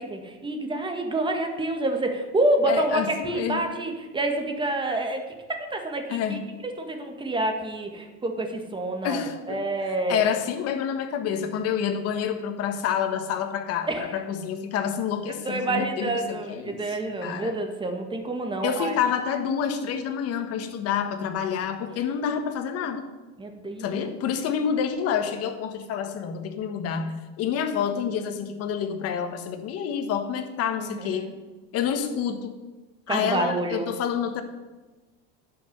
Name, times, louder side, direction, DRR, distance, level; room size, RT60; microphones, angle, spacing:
voice 1, 0.0-5.2 5.5-6.4 6.8-10.3 13.9-14.1 15.5-18.9 23.4-24.1 30.8-31.2 33.1-33.9, right 2 dB, 15° right, 4 dB, 1.8 m, -28 dB
voice 2, 2.7-3.6 6.1-6.4 9.0-9.6 10.1-17.6 18.6-23.0 23.8-31.3 31.7-32.5 33.1-34.4, left 8 dB, 50° left, 7 dB, 1.5 m, -28 dB
11.0 x 6.2 x 8.2 m, 1.2 s
supercardioid pair, 120°, 30 cm